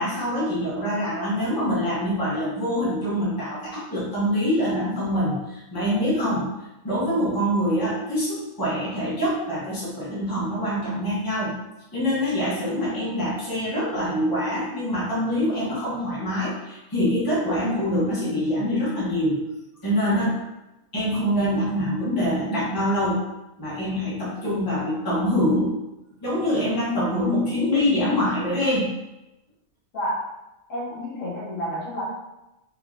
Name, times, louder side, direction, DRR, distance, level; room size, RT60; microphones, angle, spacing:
voice 1, 0.0-5.4 5.7-6.5 6.8-11.6 11.9-19.4 19.8-20.4 20.9-23.2 23.6-25.7 26.2-28.9, equal, 15° left, -7 dB, 1.3 m, -24 dB
voice 2, 24.7-25.1 29.9-30.3 30.7-32.0, equal, 70° left, -7 dB, 1.7 m, -30 dB
4.7 x 3.7 x 2.7 m, 0.95 s
omnidirectional pair, 1.5 m